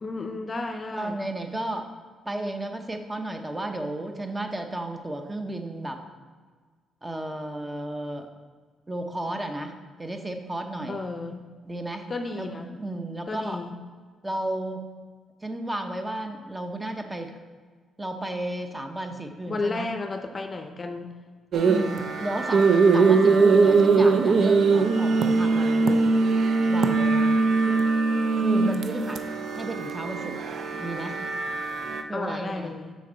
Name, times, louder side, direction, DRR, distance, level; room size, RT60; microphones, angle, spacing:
voice 1, 0.0-1.2 10.9-11.4 12.1-12.8 13.3-13.7 19.5-21.1 32.1-32.9, left 3 dB, 35° left, 6 dB, 0.6 m, -33 dB
voice 2, 0.9-1.9 2.2-6.0 7.0-8.3 8.9-11.0 11.6-12.1 12.4-13.6 14.2-14.9 15.4-17.4 18.0-19.9 21.5-26.1 26.7-27.9 28.3-29.2 29.6-30.4 30.7-31.2 32.1-32.7, right 1 dB, 15° right, 5 dB, 0.8 m, -33 dB
sound 1, 21.5-32.0, right 4 dB, 60° right, 0.5 m, -21 dB
6.5 x 5.3 x 3.9 m, 1.6 s
cardioid pair, 90°, 0 cm